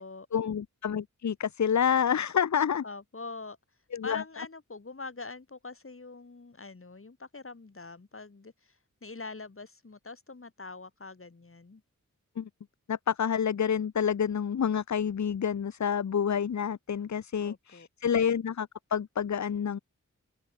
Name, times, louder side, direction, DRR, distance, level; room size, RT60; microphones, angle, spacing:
voice 1, 0.3-2.8 3.9-4.2 12.4-12.5 12.9-19.8, left 7 dB, 65° left, 0.9 m, -28 dB
voice 2, 2.8-3.6 4.0-11.8 17.4-17.9, left 3 dB, 45° left, 7.7 m, -44 dB
open air
wide cardioid pair, 75°, 31 cm